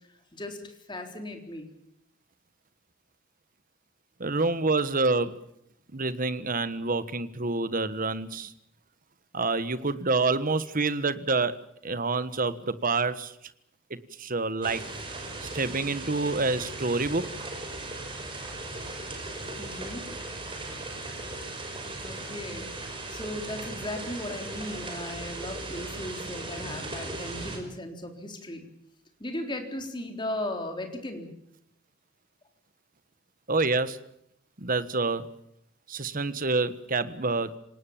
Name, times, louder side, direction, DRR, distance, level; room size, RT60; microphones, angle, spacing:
voice 1, 0.3-1.7 19.6-20.1 22.0-22.7 23.1-28.7 29.2-31.3, left 1 dB, 25° left, 4 dB, 3.7 m, -37 dB
voice 2, 4.2-5.4 5.9-8.5 9.3-13.3 13.9-14.8 15.4-17.3 33.5-34.0 34.6-35.3 35.9-37.5, right 3 dB, 45° right, 14 dB, 1.4 m, -27 dB
sound 1, 14.6-27.6, right 2 dB, 25° right, 5.7 m, -38 dB
27.0 x 18.5 x 7.3 m, 0.74 s
head